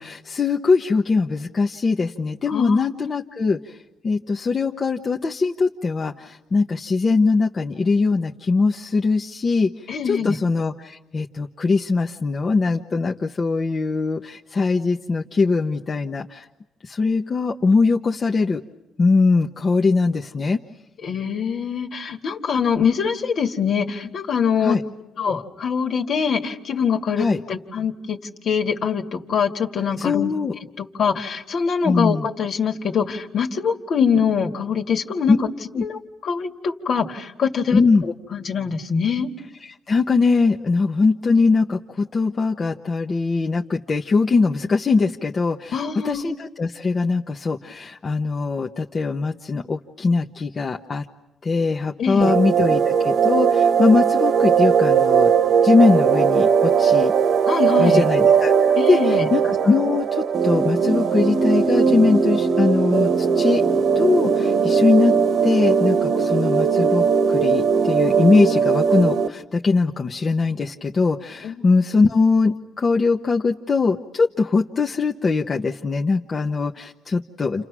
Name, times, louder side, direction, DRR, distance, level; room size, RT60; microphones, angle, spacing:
voice 1, 0.0-3.7 4.0-9.7 10.0-16.5 16.8-18.6 19.0-20.6 24.6-24.8 27.2-27.4 30.0-30.5 31.8-32.3 35.3-35.4 35.7-35.8 37.7-38.0 39.6-51.1 51.4-55.3 55.6-57.1 57.8-63.6 63.9-65.1 65.4-77.7, left 4 dB, 35° left, 1 dB, 1.1 m, -21 dB
voice 2, 2.5-2.9 9.9-10.4 21.0-24.8 25.2-28.2 28.4-30.3 30.8-35.4 35.8-39.3 45.7-46.2 52.0-52.3 57.5-58.0 58.8-59.3 71.4-71.7, left 6 dB, 60° left, 4 dB, 2.1 m, -24 dB
sound 1, 52.2-69.3, right 6 dB, 60° right, 1.5 m, -19 dB
29.5 x 28.5 x 6.2 m, 0.91 s
cardioid pair, 90°, 0 cm